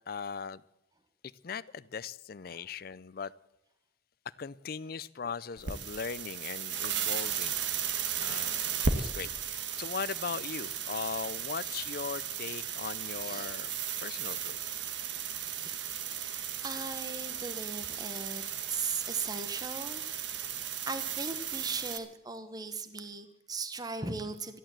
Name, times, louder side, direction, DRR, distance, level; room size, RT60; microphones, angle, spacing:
voice 1, 0.1-0.6 1.2-3.3 4.3-7.5 8.2-13.7 14.0-14.6, left 6 dB, 50° left, 0.5 m, -39 dB
sound 1, 5.6-22.0, right 7 dB, 65° right, 1.3 m, -35 dB
voice 2, 13.2-13.5 15.4-15.9 16.6-18.4 18.7-20.0 20.9-24.6, right 4 dB, 20° right, 1.0 m, -38 dB
13.5 x 11.5 x 7.5 m
head